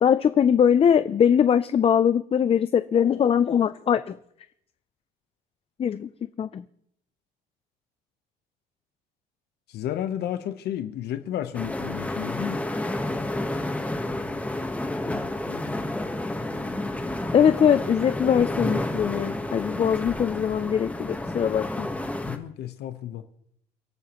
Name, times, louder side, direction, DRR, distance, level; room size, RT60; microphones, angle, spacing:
voice 1, 0.0-4.2 5.8-6.6 17.3-21.9, left 8 dB, 35° left, 0.5 m, -21 dB
voice 2, 9.7-12.6 15.1-15.7 22.2-23.2, left 11 dB, 75° left, 1.0 m, -32 dB
sound 1, 11.5-22.4, left 1 dB, 10° left, 1.3 m, -30 dB
29.5 x 12.5 x 3.0 m
cardioid pair, 110°, 17 cm